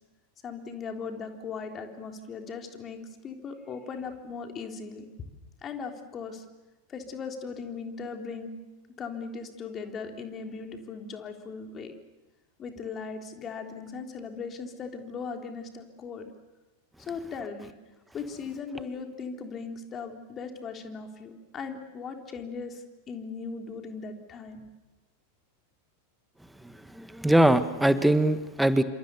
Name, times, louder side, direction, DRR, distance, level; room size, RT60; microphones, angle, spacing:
voice 1, 0.4-5.0 5.6-6.4 6.9-8.5 9.0-11.9 12.6-16.3 17.0-17.7 18.1-24.6, left 5 dB, 25° left, 4 dB, 3.6 m, -38 dB
voice 2, 27.0-28.8, right 1 dB, 5° right, 12 dB, 1.5 m, -22 dB
28.5 x 27.0 x 7.0 m, 1.1 s
figure-of-eight pair, 90°, 0 cm